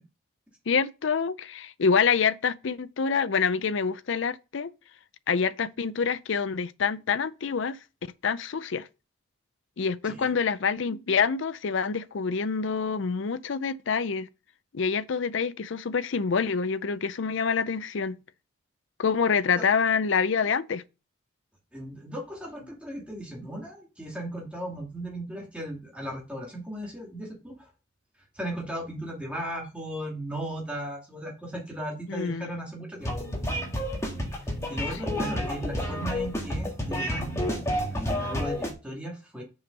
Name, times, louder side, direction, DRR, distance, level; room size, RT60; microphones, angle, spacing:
voice 1, 0.7-4.7 5.3-7.8 8.2-8.9 9.8-14.3 14.7-18.2 19.0-20.8 32.1-32.5 35.1-35.2, left 5 dB, 65° left, 0.5 m, -26 dB
voice 2, 21.7-27.7 28.3-33.1 34.4-37.4 37.9-39.4, right 1 dB, 5° right, 2.3 m, -36 dB
sound 1, 33.0-38.7, equal, 15° left, 1.8 m, -30 dB
7.0 x 5.2 x 5.4 m
head